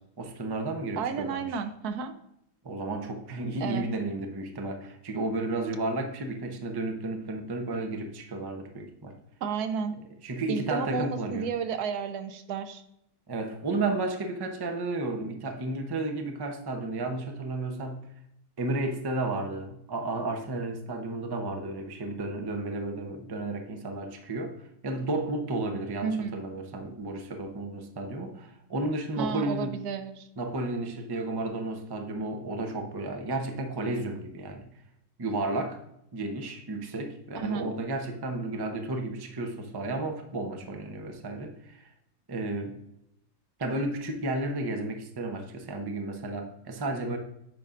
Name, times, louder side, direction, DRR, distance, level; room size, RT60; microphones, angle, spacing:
voice 1, 0.2-1.6 2.6-9.1 10.2-11.5 13.3-18.1 18.6-29.8 30.4-34.7 35.2-35.8 36.1-41.9 42.3-42.8 43.6-47.2, right 2 dB, 25° right, 4 dB, 0.5 m, -32 dB
voice 2, 1.0-2.1 3.6-3.8 9.4-10.0 10.5-12.8 26.0-26.4 29.2-30.3 37.4-37.7, right 6 dB, 80° right, 9 dB, 1.2 m, -32 dB
9.3 x 5.4 x 2.5 m, 0.80 s
omnidirectional pair, 1.6 m